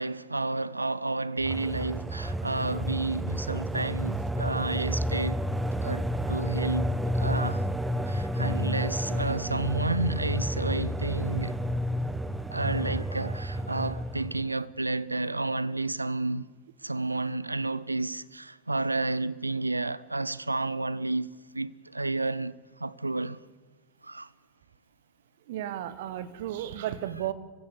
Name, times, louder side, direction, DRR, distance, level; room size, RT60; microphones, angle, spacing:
voice 1, 0.0-5.4 5.8-7.6 8.1-11.6 12.5-16.5 16.8-23.4 24.0-24.3 27.3-27.4, right 2 dB, 85° right, 0.6 m, -31 dB
sound 1, 1.4-14.5, equal, 10° right, 1.2 m, -30 dB
voice 2, 25.5-27.3, right 12 dB, 55° right, 1.3 m, -33 dB
26.0 x 16.0 x 8.3 m
figure-of-eight pair, 90°, 0 cm